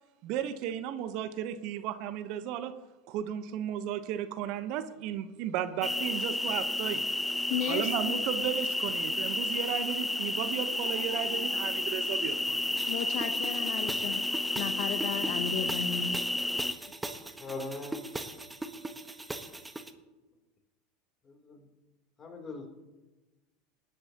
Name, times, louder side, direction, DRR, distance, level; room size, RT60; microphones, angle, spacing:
voice 1, 0.2-2.7 3.1-7.0 7.7-12.7, right 10 dB, 60° right, 11 dB, 0.9 m, -34 dB
sound 1, 5.8-16.7, left 1 dB, 5° left, 0.6 m, -31 dB
voice 2, 7.5-8.2 12.9-14.2 14.6-16.2, left 9 dB, 60° left, 9 dB, 0.9 m, -34 dB
sound 2, 12.8-19.9, right 2 dB, 10° right, 1.1 m, -41 dB
voice 3, 17.4-18.1 21.2-21.7 22.2-22.7, left 3 dB, 30° left, 2 dB, 3.2 m, -41 dB
20.5 x 10.5 x 2.9 m, 1.1 s
hypercardioid pair, 85°, 0 cm